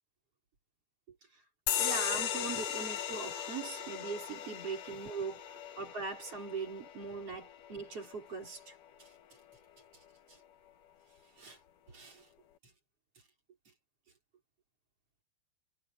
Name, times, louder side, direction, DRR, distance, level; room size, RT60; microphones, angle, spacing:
sound 1, 1.7-8.7, left 9 dB, 60° left, 2.4 m, -37 dB
voice 1, 1.8-5.4 5.8-9.1 10.3-10.4 11.4-11.6 11.9-12.3, right 4 dB, 35° right, 5.5 m, -41 dB
omnidirectional pair, 5.0 m